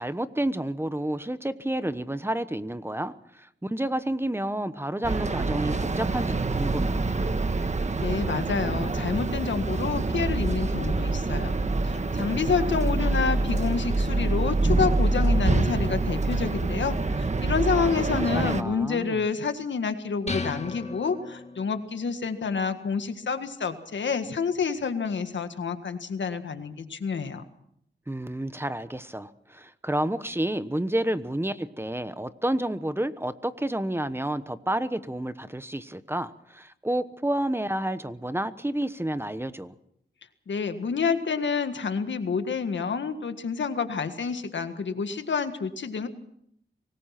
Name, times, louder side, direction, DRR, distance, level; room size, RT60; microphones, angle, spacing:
voice 1, 0.0-7.1 17.7-19.2 28.1-39.7, right 1 dB, 10° right, 12 dB, 1.1 m, -30 dB
sound 1, 5.0-18.6, right 3 dB, 40° right, 1.4 m, -26 dB
voice 2, 8.0-11.6 11.8-27.4 40.5-46.1, left 5 dB, 75° left, 8 dB, 1.8 m, -28 dB
sound 2, 20.3-21.9, left 3 dB, 35° left, 1.8 m, -35 dB
24.5 x 19.5 x 5.9 m, 0.72 s
wide cardioid pair, 75°, 19 cm